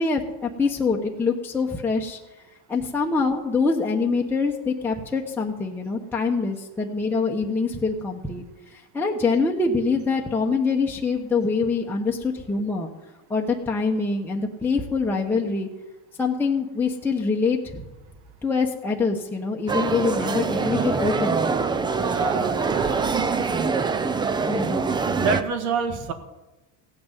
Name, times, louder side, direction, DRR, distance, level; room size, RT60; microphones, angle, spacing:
voice 1, 0.0-2.2 2.7-12.9 13.3-15.7 16.2-17.9 18.4-21.5 24.5-24.9, left 4 dB, 5° left, -1 dB, 1.0 m, -25 dB
sound 1, 19.7-25.4, right 4 dB, 10° right, 0.4 m, -24 dB
voice 2, 21.9-23.4 25.2-26.1, right 5 dB, 90° right, 8 dB, 1.9 m, -28 dB
16.0 x 6.1 x 9.0 m, 1.1 s
supercardioid pair, 135°, 41 cm